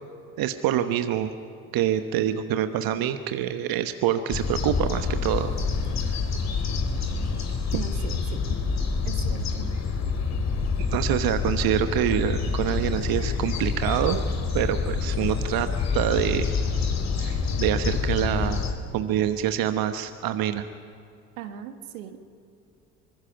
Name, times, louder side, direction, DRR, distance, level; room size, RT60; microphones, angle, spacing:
voice 1, 0.4-1.3 1.7-5.5 10.8-14.2 14.5-15.7 15.9-16.5 17.2-18.6 18.9-20.7, right 11 dB, 60° right, 9 dB, 1.2 m, -26 dB
sound 1, 4.3-18.7, left 4 dB, 40° left, 3.2 m, -27 dB
voice 2, 7.7-8.7 9.0-9.7 21.4-22.2, right 10 dB, 80° right, 8 dB, 1.5 m, -38 dB
25.0 x 21.0 x 5.9 m, 2.5 s
hypercardioid pair, 60°, 40 cm